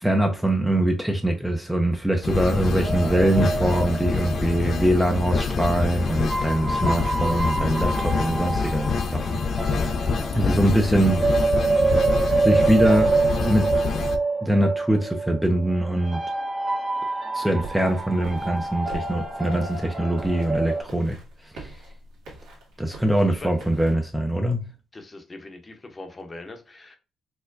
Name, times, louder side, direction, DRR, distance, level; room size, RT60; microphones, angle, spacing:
voice 1, 0.0-9.4 10.3-11.2 12.4-13.1 13.4-13.7 14.4-16.2 17.3-21.2 21.5-21.7 22.8-24.7, right 1 dB, 5° right, 0.5 m, -23 dB
sound 1, 2.2-14.2, left 4 dB, 55° left, 0.4 m, -26 dB
sound 2, 2.8-5.4 6.1-20.8, right 3 dB, 25° right, 1.2 m, -27 dB
sound 3, 17.6-24.0, right 2 dB, 90° right, 1.6 m, -43 dB
voice 2, 24.9-27.0, left 2 dB, 25° left, 0.8 m, -41 dB
4.3 x 2.2 x 2.5 m
cardioid pair, 90°, 0 cm